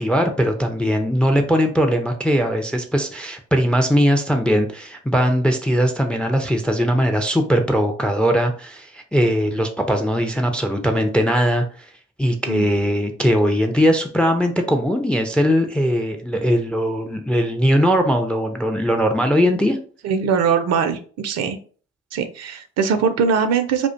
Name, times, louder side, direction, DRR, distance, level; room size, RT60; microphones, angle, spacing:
voice 1, 0.0-11.7 12.2-19.8, equal, 5° left, 5 dB, 0.3 m, -20 dB
voice 2, 20.0-21.6 22.1-23.9, right 6 dB, 55° right, 9 dB, 0.5 m, -21 dB
2.4 x 2.1 x 2.5 m, 0.42 s
hypercardioid pair, 50°, 32 cm